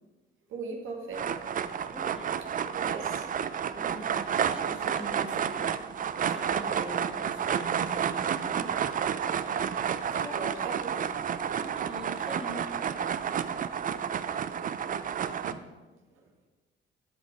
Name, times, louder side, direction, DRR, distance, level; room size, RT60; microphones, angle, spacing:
voice 1, 0.5-1.2 2.6-3.3 9.6-9.7 10.1-11.0 15.4-15.5 16.1-16.2, right 4 dB, 85° right, 0 dB, 1.9 m, -39 dB
sound 1, 1.1-15.5, right 8 dB, 45° right, 0.5 m, -30 dB
voice 2, 1.9-2.3 3.7-5.7 6.2-8.7 11.6-12.6, right 1 dB, 5° right, 1 dB, 1.7 m, -43 dB
12.0 x 5.6 x 4.6 m, 1.2 s
cardioid pair, 90°, 20 cm